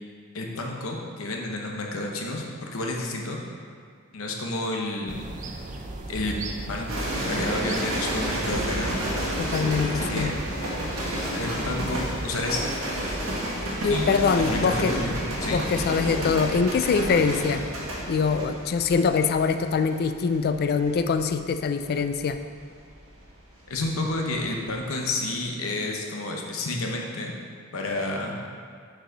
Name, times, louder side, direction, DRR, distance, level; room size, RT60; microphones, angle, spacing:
voice 1, 0.3-3.4 4.1-5.5 6.1-6.4 6.7-6.9 7.2-8.9 9.9-10.5 11.3-12.7 13.0-13.2 13.6-14.1 14.4-15.6 23.7-27.3 27.7-28.4, left 2 dB, 70° left, 0 dB, 0.9 m, -30 dB
sound 1, 5.1-12.5, right 2 dB, 35° right, 0.5 m, -37 dB
sound 2, 6.9-24.1 24.4-24.8, right 1 dB, 85° right, 1.3 m, -31 dB
voice 2, 9.4-10.3 13.8-15.0 15.5-17.6 18.1-22.4, left 5 dB, 50° left, 9 dB, 0.3 m, -24 dB
6.5 x 4.8 x 3.9 m, 2.1 s
head